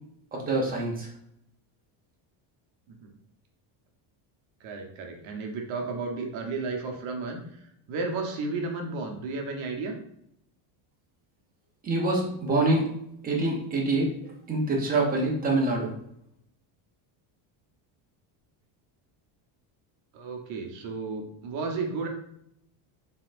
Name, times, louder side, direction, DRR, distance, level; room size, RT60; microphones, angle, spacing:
voice 1, 0.3-1.1 11.8-12.9 13.2-14.1 14.5-15.9, right 2 dB, 20° right, -1 dB, 0.6 m, -25 dB
voice 2, 4.6-9.9 20.1-22.1, right 3 dB, 70° right, 2 dB, 1.0 m, -33 dB
4.1 x 3.7 x 2.5 m, 0.75 s
cardioid pair, 170°, 49 cm